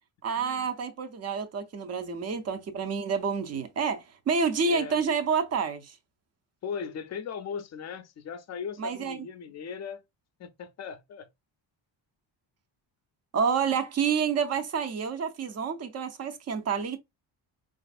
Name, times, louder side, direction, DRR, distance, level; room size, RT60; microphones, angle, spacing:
voice 1, 0.2-6.0 8.8-9.2 13.3-17.0, right 5 dB, 35° right, 0.5 m, -28 dB
voice 2, 4.7-5.0 6.6-10.0 10.4-11.3, left 6 dB, 40° left, 0.4 m, -38 dB
4.1 x 2.5 x 2.3 m
cardioid pair, 145°, 44 cm